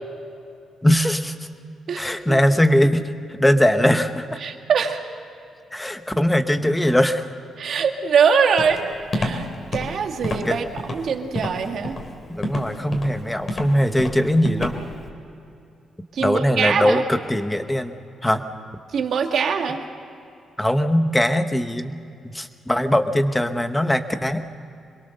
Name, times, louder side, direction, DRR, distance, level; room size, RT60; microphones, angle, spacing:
voice 1, 0.8-1.3 2.0-4.4 5.7-7.3 10.4-10.6 12.3-14.8 16.2-17.9 18.2-18.4 20.6-22.0 22.3-24.4, equal, 10° left, 8 dB, 1.1 m, -20 dB
voice 2, 1.9-2.4 4.4-5.0 7.6-8.8 9.1-9.5 9.7-12.0 16.1-17.0 18.9-19.8, right 6 dB, 60° right, 4 dB, 2.0 m, -22 dB
Walk footsteps, 8.6-15.0, left 1 dB, 35° left, 3.0 m, -29 dB
26.5 x 22.0 x 6.7 m, 2.6 s
cardioid pair, 140°, 0 cm